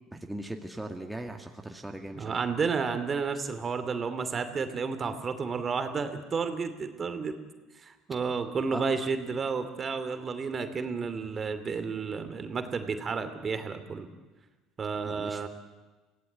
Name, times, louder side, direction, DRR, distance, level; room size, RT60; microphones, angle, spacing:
voice 1, 0.1-2.4 8.7-8.9 15.0-15.5, right 1 dB, 5° right, 3 dB, 2.1 m, -39 dB
voice 2, 2.1-7.4 7.7-14.1 14.8-15.5, right 5 dB, 35° right, 9 dB, 2.6 m, -31 dB
24.5 x 17.0 x 9.5 m, 1.2 s
supercardioid pair, 80°, 0 cm